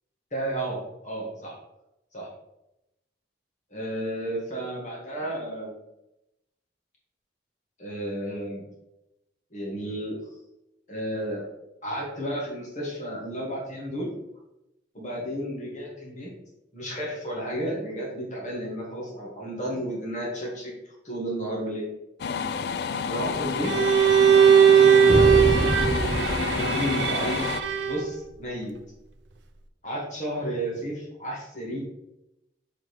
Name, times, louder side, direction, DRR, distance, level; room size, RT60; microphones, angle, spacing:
voice 1, 0.3-1.5 2.1-2.3 3.7-5.7 7.8-8.6 9.5-10.2 10.9-11.4 11.8-14.1 14.9-16.3 16.7-20.7 21.0-21.9 23.0-23.7 24.7-25.8 26.4-28.7 29.8-31.8, equal, 40° left, -3 dB, 1.7 m, -32 dB
sound 1, 22.2-27.6, left 6 dB, 55° left, 0.3 m, -29 dB
Bowed string instrument, 23.6-28.2, right 7 dB, 75° right, 0.5 m, -19 dB
sound 2, 25.1-27.7, right 1 dB, 20° right, 0.5 m, -27 dB
6.3 x 4.9 x 3.2 m, 0.90 s
head